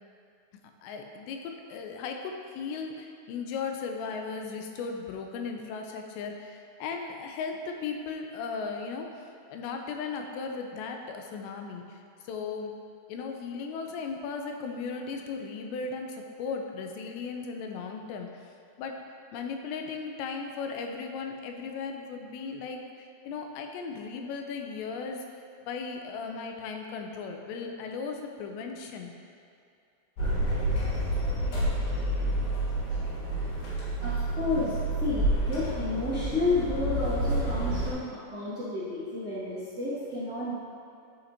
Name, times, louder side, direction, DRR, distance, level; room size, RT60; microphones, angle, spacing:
voice 1, 0.8-12.8 13.1-19.0 19.3-29.1, left 5 dB, 90° left, 3 dB, 2.8 m, -37 dB
sound 1, 30.2-37.9, right 1 dB, 60° left, 3.0 m, -29 dB
voice 2, 34.0-40.6, left 3 dB, 45° right, -14 dB, 1.3 m, -31 dB
11.0 x 5.8 x 2.8 m, 2.6 s
omnidirectional pair, 5.0 m